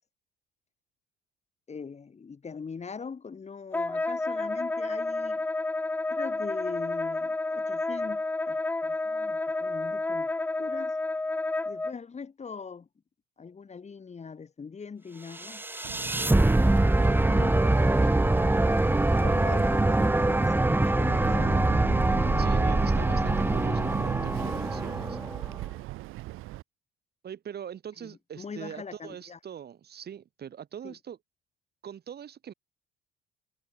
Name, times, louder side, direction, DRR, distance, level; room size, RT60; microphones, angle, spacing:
voice 1, 1.7-5.5 6.1-10.3 10.6-11.0 11.6-12.9 13.4-15.6 17.0-17.9 19.1-21.8 28.0-29.4 30.8-30.9, left 5 dB, 30° left, 4.7 m, -41 dB
Wind instrument woodwind instrument, 3.7-11.9, left 2 dB, 10° left, 0.3 m, -30 dB
sound 1, 15.4-25.6, right 2 dB, 10° right, 1.6 m, -24 dB
Boat Water vehicle, 15.8-26.6, right 18 dB, 75° right, 6.6 m, -38 dB
voice 2, 22.4-25.2 27.2-31.2 31.8-32.5, right 9 dB, 50° right, 7.8 m, -42 dB
supercardioid pair, 85°, 21 cm